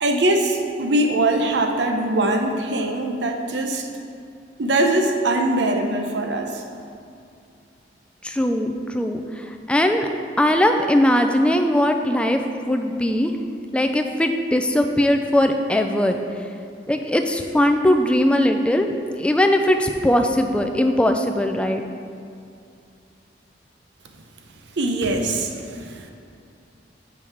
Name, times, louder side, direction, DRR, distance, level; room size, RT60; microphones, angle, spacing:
voice 1, 0.0-3.9 4.6-6.6 24.8-26.1, right 1 dB, 75° right, 4 dB, 0.7 m, -22 dB
voice 2, 8.2-9.2 9.7-10.1 10.4-12.4 12.7-13.3 13.7-16.2 16.9-21.8, left 1 dB, 5° left, 5 dB, 0.3 m, -20 dB
6.2 x 5.6 x 4.6 m, 2.4 s
head